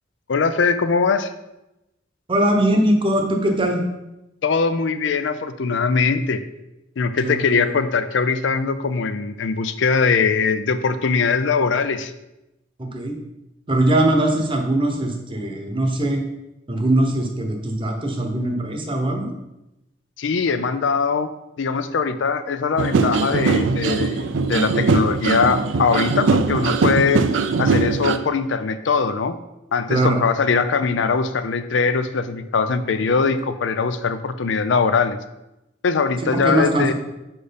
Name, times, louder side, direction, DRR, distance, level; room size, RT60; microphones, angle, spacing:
voice 1, 0.3-1.3 4.4-6.4 7.0-12.1 20.2-21.3 21.6-27.2 27.6-29.4 29.7-35.2 35.8-36.9, left 5 dB, 75° left, 11 dB, 0.5 m, -21 dB
voice 2, 2.3-3.8 7.2-7.8 12.8-13.2 13.7-16.2 16.7-19.3 29.9-30.3 36.2-36.9, right 1 dB, 25° right, 3 dB, 0.8 m, -21 dB
sound 1, 22.8-28.2, right 4 dB, 80° right, 0.4 m, -20 dB
4.9 x 4.4 x 5.1 m, 0.95 s
head